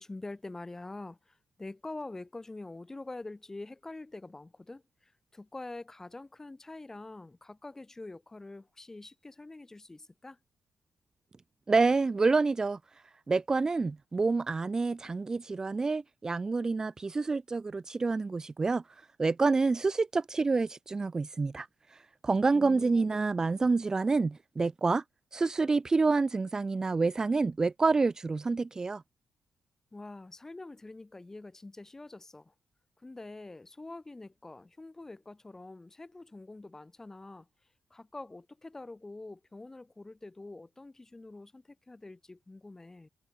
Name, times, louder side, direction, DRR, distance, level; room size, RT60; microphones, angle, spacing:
voice 1, 0.0-10.4 22.5-23.3 29.9-32.5 33.0-37.5 37.9-43.1, left 2 dB, 25° left, 3.7 m, -45 dB
voice 2, 11.7-25.0 25.3-29.0, right 4 dB, 30° right, 0.4 m, -28 dB
supercardioid pair, 50°, 2 cm